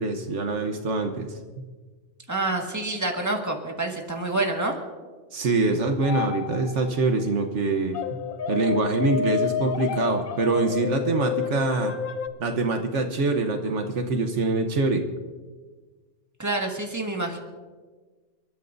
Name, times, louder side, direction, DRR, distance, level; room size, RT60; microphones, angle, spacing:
voice 1, 0.0-1.4 5.3-8.0 8.5-11.9 12.4-15.0, right 3 dB, 70° right, 5 dB, 1.3 m, -24 dB
voice 2, 2.3-4.8 16.4-17.4, right 2 dB, 15° right, 1 dB, 1.7 m, -27 dB
sound 1, 6.0-7.0 7.9-12.3, left 6 dB, 55° left, 0.7 m, -30 dB
29.5 x 12.5 x 2.6 m, 1.4 s
omnidirectional pair, 1.3 m